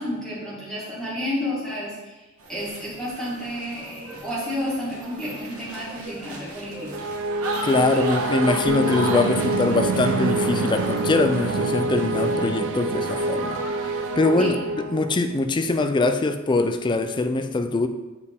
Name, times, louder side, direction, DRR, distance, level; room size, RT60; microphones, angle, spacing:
voice 1, 0.0-2.2 2.5-6.9 14.3-14.5, left 1 dB, 5° left, -9 dB, 2.1 m, -31 dB
sound 1, 2.4-14.2, right 1 dB, 80° right, 1.3 m, -36 dB
sound 2, 6.9-15.4, right 3 dB, 60° right, 0.4 m, -26 dB
voice 2, 7.6-13.6 14.2-17.9, left 2 dB, 20° left, 9 dB, 0.3 m, -23 dB
sound 3, 8.7-13.2 13.5-14.9, left 3 dB, 60° left, 1.5 m, -36 dB
7.1 x 4.3 x 3.5 m, 1.1 s
head